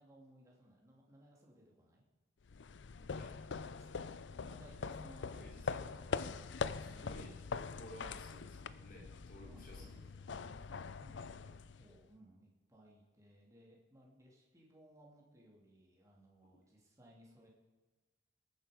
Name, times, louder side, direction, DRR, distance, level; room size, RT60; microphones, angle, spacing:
voice 1, 0.0-2.0 2.5-2.7 3.0-5.8 6.6-6.9 9.3-17.5, right 1 dB, 15° right, -3 dB, 2.7 m, -63 dB
sound 1, 2.5-12.1, left 5 dB, 70° left, 0.5 m, -43 dB
voice 2, 5.3-6.5 6.8-7.4 7.7-9.9, equal, 50° left, -2 dB, 3.6 m, -55 dB
20.5 x 9.2 x 5.1 m, 1.3 s
head